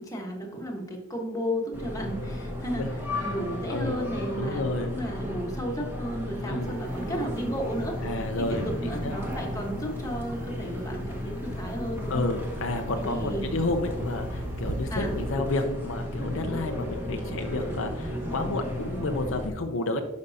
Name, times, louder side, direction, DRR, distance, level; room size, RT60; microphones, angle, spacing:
voice 1, 0.0-12.3 12.9-13.6 14.9-15.2, equal, 15° left, 0 dB, 1.3 m, -34 dB
sound 1, 1.7-19.5, left 1 dB, 10° right, 1.3 m, -34 dB
voice 2, 2.8-3.4 3.7-4.0 4.4-4.9 6.5-6.7 8.0-9.2 12.1-20.0, left 2 dB, 60° left, 5 dB, 0.6 m, -31 dB
sound 2, 6.6-15.3, right 3 dB, 40° right, 0.4 m, -42 dB
11.5 x 5.3 x 2.7 m, 1.0 s
head